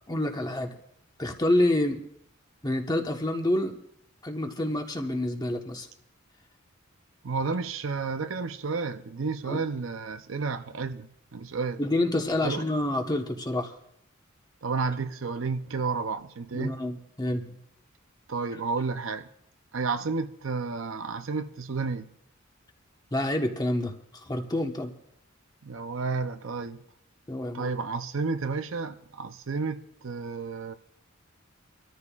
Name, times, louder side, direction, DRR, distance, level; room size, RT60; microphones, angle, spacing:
voice 1, 0.1-0.7 1.2-2.0 2.6-3.8 4.2-5.9 9.5-9.6 11.8-13.7 16.5-17.6 23.1-23.9 24.3-24.9 27.3-27.7, left 1 dB, 20° left, 1.2 m, -28 dB
voice 2, 7.2-11.8 12.4-12.6 14.6-16.8 18.3-19.3 19.7-22.1 25.6-26.8 27.5-30.7, right 4 dB, 65° right, 0.6 m, -31 dB
25.5 x 13.5 x 2.4 m
head